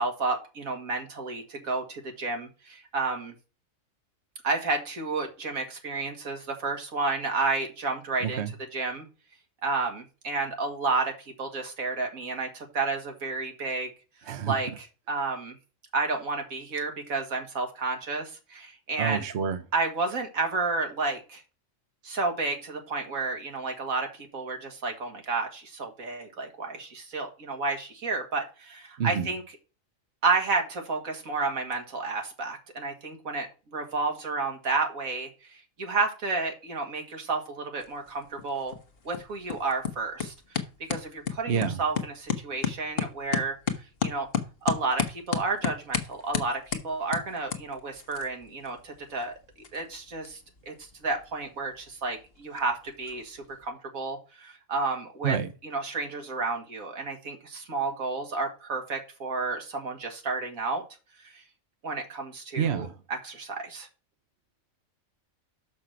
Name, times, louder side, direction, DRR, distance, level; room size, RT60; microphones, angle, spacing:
voice 1, 0.0-3.3 4.4-8.4 8.7-9.1 9.6-13.9 14.2-15.6 15.9-19.2 19.7-21.4 22.0-29.4 30.2-38.7 39.1-43.6 44.0-44.3 44.6-49.3 49.7-55.4 55.6-60.8 61.2-61.4 61.8-63.9, right 3 dB, 85° right, 2.2 m, -31 dB
voice 2, 19.0-19.6 29.0-29.3 41.5-41.8 55.2-55.5 62.6-62.9, right 7 dB, 55° right, 1.0 m, -27 dB
sound 1, 37.8-53.7, left 7 dB, 45° left, 1.2 m, -35 dB
6.3 x 5.9 x 5.8 m
omnidirectional pair, 1.4 m